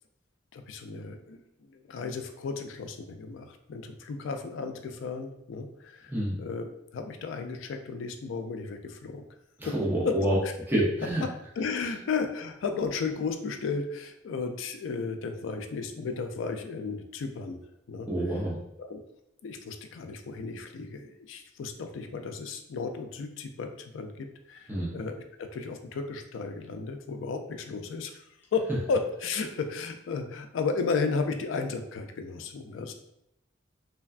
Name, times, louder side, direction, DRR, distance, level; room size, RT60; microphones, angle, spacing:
voice 1, 0.5-6.1 6.4-9.3 9.6-9.8 10.0-10.2 10.4-10.5 11.6-18.1 18.8-19.0 19.4-28.2 28.5-32.9, left 4 dB, 85° left, 6 dB, 0.3 m, -34 dB
voice 2, 9.6-10.4 10.7-11.2 18.1-18.6 24.7-24.9, right 1 dB, 10° right, -6 dB, 0.6 m, -27 dB
3.3 x 2.2 x 2.4 m, 0.81 s
head